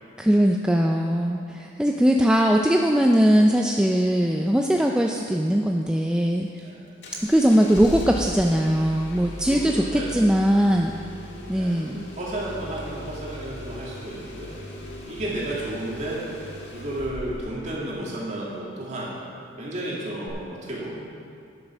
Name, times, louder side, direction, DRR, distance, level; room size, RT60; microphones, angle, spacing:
voice 1, 0.2-6.5 7.2-10.9 11.5-12.0, equal, 5° right, 1 dB, 0.3 m, -20 dB
Engine starting, 7.0-17.6 20.3-20.4, equal, 60° left, 1.6 m, -38 dB
voice 2, 9.4-10.1 11.5-11.8 12.1-14.6 15.1-16.2 16.7-19.1 19.6-21.0, right 1 dB, 35° right, -5 dB, 2.3 m, -32 dB
9.9 x 7.5 x 6.1 m, 2.4 s
head